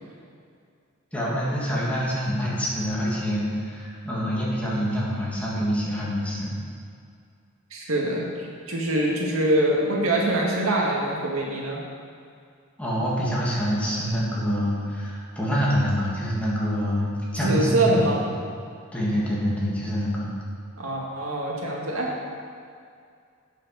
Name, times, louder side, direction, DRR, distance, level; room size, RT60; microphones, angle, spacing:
voice 1, 1.1-6.5 12.8-18.0 18.9-20.3, equal, 5° left, -7 dB, 2.6 m, -26 dB
voice 2, 7.7-11.8 17.4-18.2 20.8-22.1, right 1 dB, 80° right, -2 dB, 1.9 m, -24 dB
9.1 x 7.7 x 6.3 m, 2.3 s
head